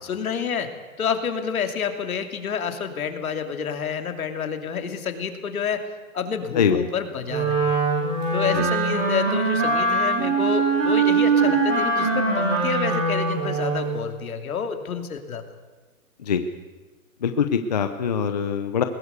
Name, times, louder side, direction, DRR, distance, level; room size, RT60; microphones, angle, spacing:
voice 1, 0.0-0.7 1.0-5.8 6.1-7.8 8.3-15.4, left 6 dB, 75° left, 6 dB, 2.9 m, -29 dB
voice 2, 6.6-6.9 8.5-8.7 16.2-16.4 17.2-18.8, left 7 dB, 30° left, 8 dB, 0.7 m, -23 dB
Wind instrument woodwind instrument, 7.3-14.0, right 4 dB, 60° right, 7.8 m, -22 dB
21.0 x 17.0 x 8.2 m, 1.2 s
hypercardioid pair, 180°, 43 cm